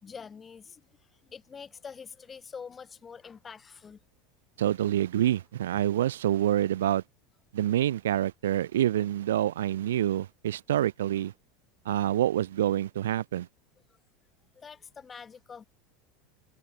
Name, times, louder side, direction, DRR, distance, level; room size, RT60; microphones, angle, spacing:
voice 1, 0.0-0.9 1.2-4.0 14.6-15.6, left 6 dB, 25° left, 3.8 m, -45 dB
voice 2, 4.6-7.0 7.5-11.3 11.8-13.5, right 12 dB, 85° right, 1.2 m, -27 dB
hypercardioid pair, 100°, 0 cm